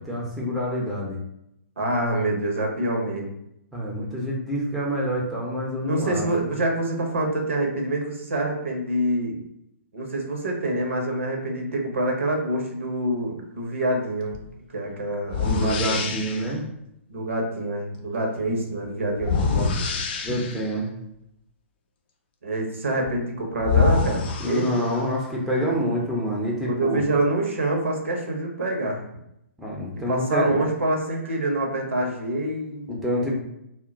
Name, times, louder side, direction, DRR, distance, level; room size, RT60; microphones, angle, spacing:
voice 1, 0.1-1.2 3.7-6.3 15.4-16.6 20.2-20.9 24.4-27.0 29.6-30.6 32.9-33.4, equal, ahead, -4 dB, 0.6 m, -27 dB
voice 2, 1.8-3.3 5.8-9.4 9.9-14.4 14.7-16.0 17.1-20.0 22.4-24.7 26.7-29.0 30.1-32.9, right 1 dB, 70° right, 1 dB, 0.7 m, -26 dB
sound 1, 14.3-14.5 15.3-16.5 19.2-20.8 23.1-23.2 23.6-25.2, left 5 dB, 45° left, 0.4 m, -25 dB
2.1 x 2.1 x 3.8 m, 0.79 s
figure-of-eight pair, 120°, 7 cm